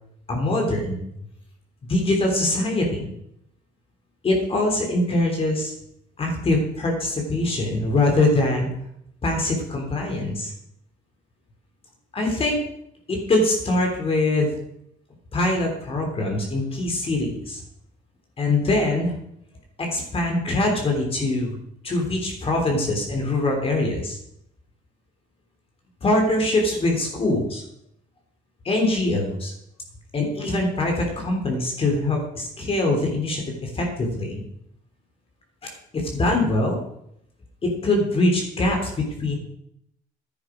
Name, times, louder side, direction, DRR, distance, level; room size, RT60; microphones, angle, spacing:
voice 1, 0.3-1.0 1.8-3.1 4.2-5.7 6.2-8.7 9.2-10.5 12.1-12.6 13.1-14.5 15.3-17.6 18.4-19.1 19.8-21.6 21.8-24.2 26.0-27.6 28.7-29.5 30.1-34.4 35.9-36.8 37.6-39.4, left 2 dB, 35° left, 1 dB, 3.3 m, -23 dB
11.0 x 9.6 x 5.0 m, 0.75 s
cardioid pair, 110°, 17 cm